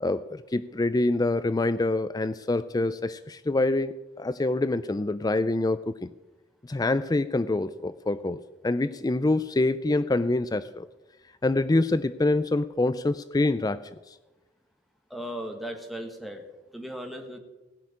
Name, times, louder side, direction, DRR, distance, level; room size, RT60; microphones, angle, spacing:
voice 1, 0.0-6.1 6.7-10.9 11.4-13.9, left 2 dB, 20° left, 14 dB, 0.4 m, -26 dB
voice 2, 15.1-16.4 16.7-17.4, equal, ahead, 3 dB, 1.6 m, -36 dB
17.0 x 6.6 x 9.9 m, 1.1 s
head